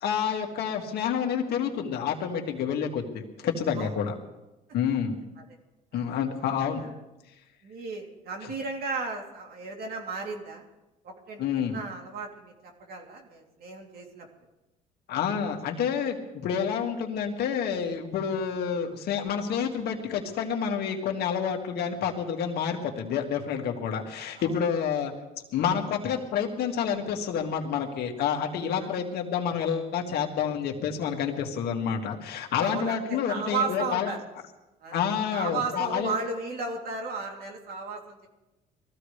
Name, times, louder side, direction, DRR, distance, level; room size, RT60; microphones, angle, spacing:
voice 1, 0.0-4.1 4.7-5.2 5.9-6.8 8.4-8.5 11.4-11.8 15.1-16.2 16.4-25.1 25.5-34.1 34.9-36.1, left 7 dB, 70° left, 2 dB, 2.1 m, -28 dB
voice 2, 7.6-10.6 11.0-12.5 12.9-14.3 24.4-24.6 28.8-28.9 32.6-34.2 34.8-35.0 35.3-38.3, right 4 dB, 65° right, 1 dB, 3.0 m, -34 dB
22.5 x 15.0 x 3.3 m, 1.0 s
cardioid pair, 110°, 17 cm